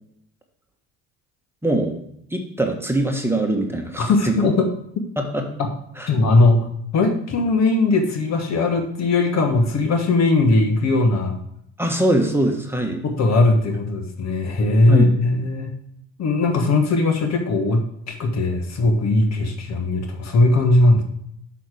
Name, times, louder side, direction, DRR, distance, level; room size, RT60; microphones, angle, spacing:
voice 1, 1.6-2.0 2.3-4.3 5.2-5.4 6.0-6.1 11.8-13.0 14.9-15.1, right 1 dB, 5° right, 2 dB, 1.4 m, -22 dB
voice 2, 4.0-4.7 6.1-11.4 13.0-15.7 16.2-21.0, left 2 dB, 55° left, 5 dB, 1.5 m, -19 dB
6.2 x 5.9 x 4.9 m, 0.73 s
supercardioid pair, 70°, 33 cm